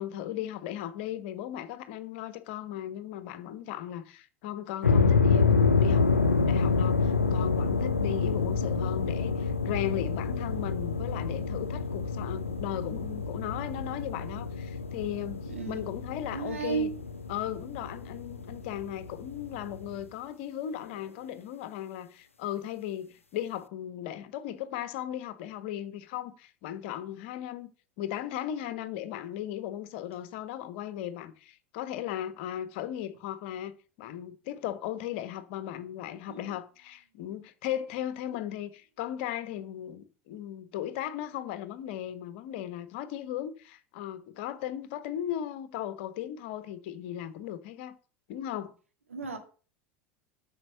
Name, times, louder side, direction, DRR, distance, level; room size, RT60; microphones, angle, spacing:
voice 1, 0.0-16.9 17.3-27.7 28.0-47.9 48.3-48.7, left 11 dB, 55° left, 1.3 m, -37 dB
sound 1, 4.8-20.0, left 4 dB, 85° left, 0.7 m, -28 dB
voice 2, 15.5-15.8 16.3-17.0 36.3-36.4 49.1-49.4, right 5 dB, 80° right, 2.2 m, -33 dB
8.8 x 6.7 x 7.7 m
figure-of-eight pair, 80°, 7 cm